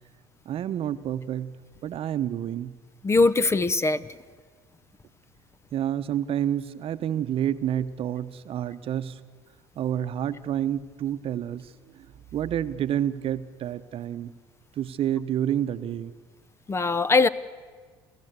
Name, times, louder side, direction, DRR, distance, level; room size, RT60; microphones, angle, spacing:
voice 1, 0.4-1.5 1.8-2.7 5.7-9.2 9.8-12.1 12.3-14.3 14.8-16.1, right 10 dB, 50° right, 12 dB, 1.0 m, -29 dB
voice 2, 3.0-4.1 16.7-17.3, left 3 dB, 20° left, 17 dB, 0.8 m, -21 dB
28.5 x 14.5 x 8.1 m, 1.5 s
hypercardioid pair, 80°, 12 cm